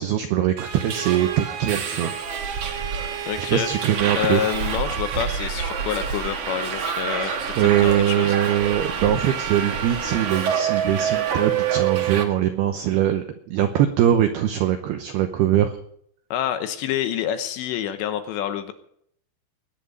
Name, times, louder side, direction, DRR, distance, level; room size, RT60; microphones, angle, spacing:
voice 1, 0.0-2.1 3.5-4.4 7.2-15.7, right 11 dB, 90° right, 7 dB, 2.2 m, -22 dB
Subway metro underground, 0.6-12.2, right 7 dB, 60° right, 2.1 m, -27 dB
voice 2, 3.3-3.7 4.1-7.3 7.6-8.4 16.3-18.7, left 10 dB, 75° left, 9 dB, 2.8 m, -27 dB
21.0 x 10.5 x 5.3 m, 0.67 s
omnidirectional pair, 5.9 m